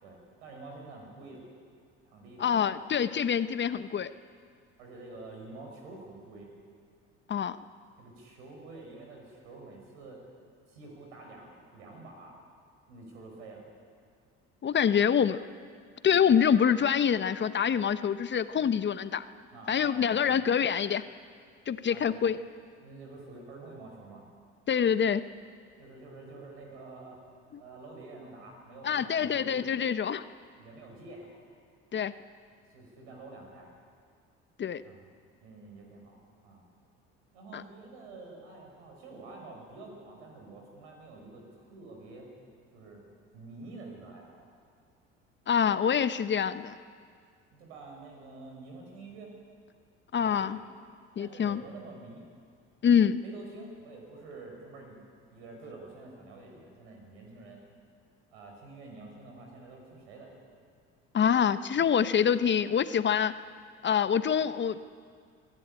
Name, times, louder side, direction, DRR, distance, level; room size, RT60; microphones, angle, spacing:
voice 1, 0.0-1.5 2.0-2.8 4.8-6.6 8.0-10.2 10.7-12.4 12.9-13.7 19.5-20.4 21.9-22.2 22.8-24.2 25.8-27.2 27.6-29.6 30.6-31.6 32.7-33.7 34.8-35.0 35.4-36.6 37.3-42.3 42.7-43.0 43.3-44.5 47.5-49.3 50.2-50.5 51.2-52.3 53.2-55.0 55.3-57.6 58.3-60.4, right 3 dB, 85° right, 1 dB, 5.6 m, -48 dB
voice 2, 2.4-4.1 7.3-7.6 14.6-15.4 16.0-19.2 19.7-21.0 21.7-22.4 24.7-25.3 28.8-30.2 31.9-32.1 34.6-34.8 37.5-37.6 45.5-46.8 50.1-50.6 51.2-51.6 52.8-53.2 61.1-63.3 63.8-64.8, left 8 dB, 35° left, 13 dB, 0.8 m, -26 dB
22.5 x 11.5 x 9.9 m, 2.1 s
hypercardioid pair, 70°, 32 cm